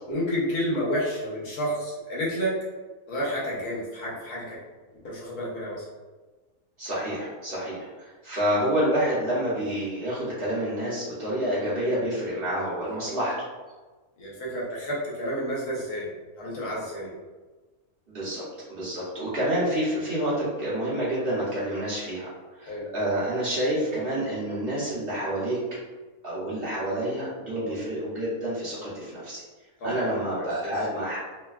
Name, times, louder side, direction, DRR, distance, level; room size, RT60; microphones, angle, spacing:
voice 1, 0.1-2.6 3.1-4.6 5.0-5.8 13.0-13.1 14.2-16.1 16.4-17.1 22.7-22.9 27.5-27.8 29.8-30.1 30.4-30.7, equal, 85° left, -6 dB, 1.4 m, -30 dB
voice 2, 6.8-13.3 18.1-18.4 18.7-22.3 22.6-25.6 26.2-29.4 29.8-31.2, right 1 dB, 50° right, -9 dB, 0.8 m, -28 dB
3.1 x 2.2 x 2.3 m, 1.3 s
omnidirectional pair, 1.6 m